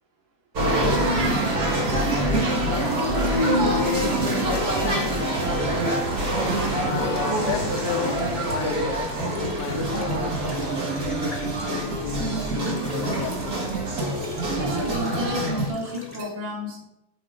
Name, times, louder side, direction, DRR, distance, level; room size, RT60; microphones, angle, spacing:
sound 1, 0.6-15.7, right 1 dB, 40° right, 1.4 m, -25 dB
sound 2, 1.8-16.2, left 1 dB, 5° left, 1.4 m, -44 dB
voice 1, 2.5-3.1 3.7-5.4 6.8-10.5 11.0-13.7, left 11 dB, 80° left, 9 dB, 1.6 m, -34 dB
sound 3, 7.3-14.9, left 5 dB, 30° left, 1.3 m, -43 dB
voice 2, 14.5-16.8, equal, 75° right, -3 dB, 3.7 m, -31 dB
13.5 x 4.8 x 3.8 m, 0.88 s
omnidirectional pair, 3.7 m